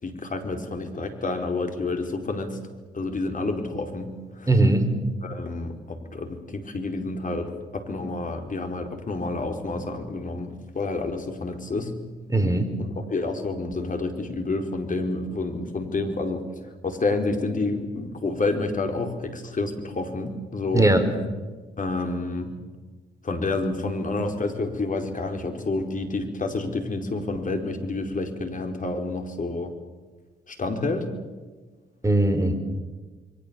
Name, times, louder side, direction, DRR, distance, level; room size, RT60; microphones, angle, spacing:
voice 1, 0.0-2.6 2.9-4.5 5.2-11.9 12.8-16.4 16.8-20.9 21.8-22.5 23.2-29.7 30.5-31.1, left 3 dB, 40° left, 4 dB, 4.8 m, -29 dB
voice 2, 4.5-4.9 12.3-12.7 20.7-21.0 32.0-32.5, right 2 dB, 15° right, 8 dB, 5.1 m, -19 dB
28.0 x 23.0 x 7.2 m, 1.3 s
hypercardioid pair, 45°, 20 cm